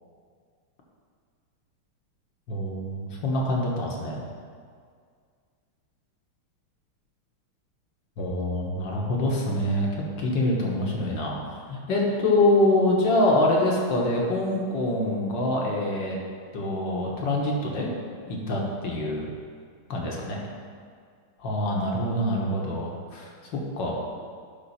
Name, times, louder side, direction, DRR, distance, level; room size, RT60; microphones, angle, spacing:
voice 1, 2.5-4.2 8.2-11.4 11.7-16.2 16.5-17.9 18.3-19.3 19.9-20.4 21.4-23.9, left 1 dB, 60° left, -2 dB, 1.8 m, -25 dB
11.0 x 3.8 x 5.6 m, 2.1 s
omnidirectional pair, 2.4 m